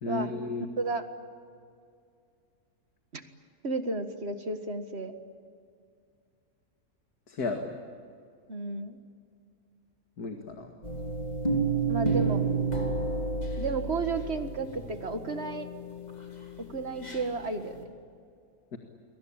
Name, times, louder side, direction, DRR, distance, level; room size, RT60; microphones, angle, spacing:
voice 1, 0.0-0.7 7.3-7.8 10.2-10.7 18.7-18.8, left 3 dB, 85° left, 4 dB, 2.5 m, -34 dB
voice 2, 3.6-5.1 8.5-9.0 11.9-12.4 13.6-15.7 16.7-17.8, right 3 dB, 45° right, 7 dB, 2.0 m, -32 dB
sound 1, 10.8-17.3 17.7-17.8, right 4 dB, 25° left, 3.5 m, -31 dB
29.5 x 22.5 x 8.8 m, 2.3 s
omnidirectional pair, 1.6 m